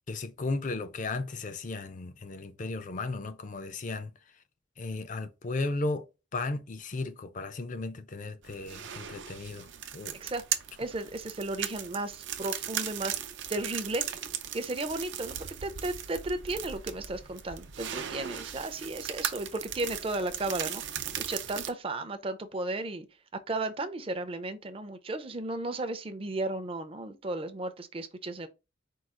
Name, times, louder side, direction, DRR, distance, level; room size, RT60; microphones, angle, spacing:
voice 1, 0.1-4.1 4.8-6.0 6.3-10.2, left 3 dB, 40° left, 0.5 m, -35 dB
sound 1, 8.4-21.7, right 9 dB, 75° right, 0.5 m, -38 dB
voice 2, 10.8-13.2 13.5-14.0 14.5-20.8 21.2-23.1 23.5-28.5, right 2 dB, 30° right, 0.5 m, -34 dB
4.7 x 2.4 x 3.7 m
head